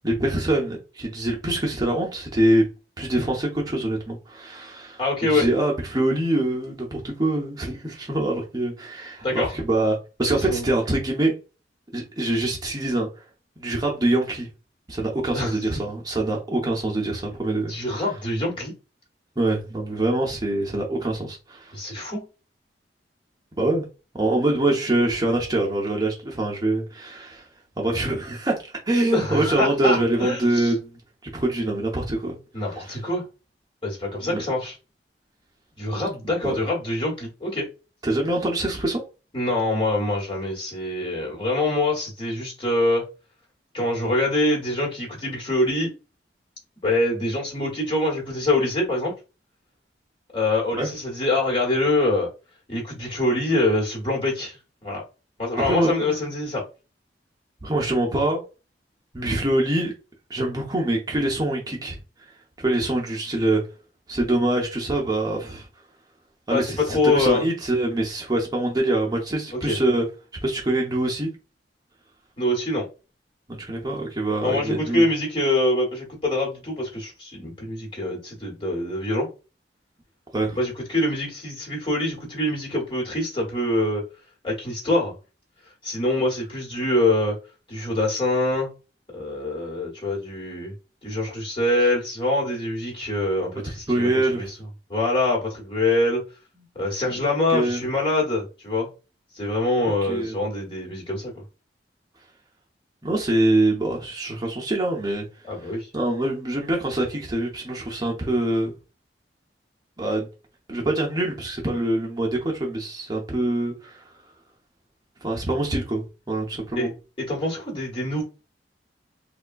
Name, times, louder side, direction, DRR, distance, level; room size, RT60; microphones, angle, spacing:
voice 1, 0.0-2.7 3.0-11.3 11.9-13.1 13.6-14.5 14.9-18.0 19.4-21.7 23.6-23.8 24.1-27.5 27.8-30.9 31.3-32.4 32.7-32.9 34.2-34.4 36.4-36.6 38.0-39.0 50.8-50.9 55.6-56.2 57.6-58.4 59.1-59.9 60.3-62.0 62.6-63.6 64.1-65.7 66.5-70.0 70.4-71.3 73.5-75.1 80.3-80.6 93.6-94.5 97.1-97.2 97.5-97.8 100.0-100.4 103.0-105.2 105.6-108.7 110.0-110.3 110.7-114.0 115.2-116.9, right 1 dB, 20° right, 0.7 m, -24 dB
voice 2, 5.0-5.5 9.2-9.5 10.4-10.7 15.3-15.5 17.7-18.7 21.7-22.3 29.1-30.7 32.5-33.2 33.8-34.7 35.8-37.7 39.3-43.0 43.7-45.9 46.8-49.1 50.3-52.3 52.7-54.6 54.8-55.0 55.4-56.6 66.5-67.5 69.6-69.8 72.4-72.9 74.4-79.3 80.6-84.0 84.4-85.1 85.8-87.4 87.7-88.7 89.1-90.7 91.0-94.5 94.9-96.2 96.7-98.9 99.3-101.3 105.5-105.9 116.7-116.9 117.2-118.2, left 2 dB, 30° left, 1.3 m, -24 dB
3.5 x 2.2 x 2.5 m
head